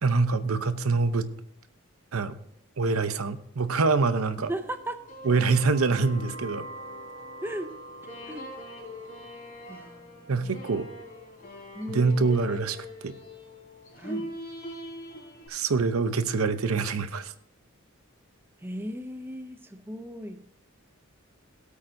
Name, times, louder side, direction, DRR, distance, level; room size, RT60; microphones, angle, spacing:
voice 1, 0.0-1.3 2.1-2.4 2.8-4.5 5.2-6.7 10.3-10.9 11.9-13.2 15.5-17.3, right 4 dB, 90° right, 11 dB, 0.7 m, -25 dB
sound 1, 4.3-15.5, equal, 40° left, 3.5 m, -42 dB
voice 2, 4.5-5.0 7.4-7.7 8.3-8.5 9.7-10.7 11.7-12.0 14.0-14.3 18.6-20.4, right 1 dB, 10° right, 8 dB, 0.5 m, -37 dB
17.5 x 8.4 x 2.7 m, 0.70 s
head